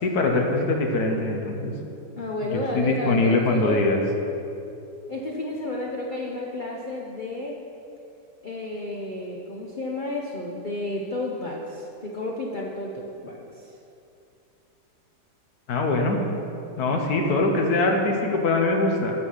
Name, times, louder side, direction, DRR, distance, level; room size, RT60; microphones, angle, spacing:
voice 1, 0.0-1.7 2.4-4.0 15.7-16.2 16.8-19.1, left 2 dB, 65° left, 2 dB, 1.5 m, -23 dB
voice 2, 2.2-3.9 5.1-7.6 8.4-13.7 16.9-17.5, left 2 dB, 45° left, -1 dB, 0.6 m, -32 dB
10.5 x 6.5 x 5.6 m, 2.7 s
omnidirectional pair, 1.9 m